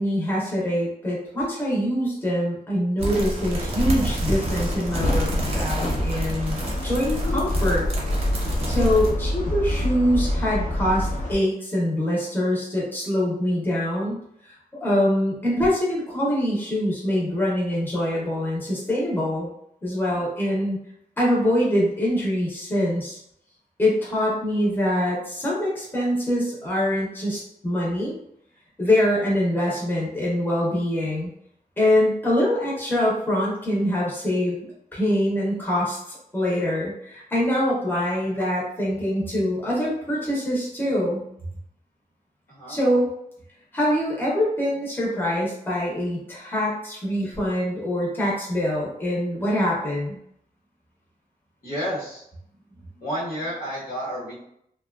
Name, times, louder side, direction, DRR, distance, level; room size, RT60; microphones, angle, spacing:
voice 1, 0.0-7.9 8.7-14.2 14.4-14.5 14.8-19.5 19.8-20.8 21.2-23.2 23.8-28.1 28.8-31.3 31.8-41.2 42.7-43.1 43.7-50.2, left 1 dB, 15° left, -6 dB, 0.7 m, -24 dB
sound 1, 3.0-9.1, right 1 dB, 40° right, 0.6 m, -28 dB
sound 2, 4.3-11.4, left 1 dB, 55° left, 0.5 m, -27 dB
voice 2, 51.6-52.2 53.0-54.3, equal, 70° left, -6 dB, 1.1 m, -30 dB
2.7 x 2.2 x 2.3 m, 0.73 s
wide cardioid pair, 165°, 15 cm